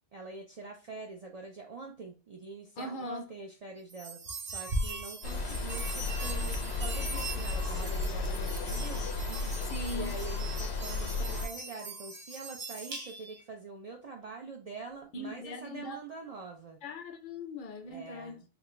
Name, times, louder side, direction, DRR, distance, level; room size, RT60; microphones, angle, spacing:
voice 1, 0.1-9.1 9.9-16.8 17.9-18.4, right 4 dB, 45° right, 0.5 m, -45 dB
voice 2, 2.8-3.2 9.6-10.1 15.1-16.0 16.8-18.4, left 2 dB, 60° left, 0.7 m, -40 dB
sound 1, 3.9-13.4, right 2 dB, 65° right, 1.0 m, -40 dB
sound 2, 5.2-11.5, left 3 dB, 85° left, 1.0 m, -34 dB
3.7 x 2.3 x 3.1 m
omnidirectional pair, 1.1 m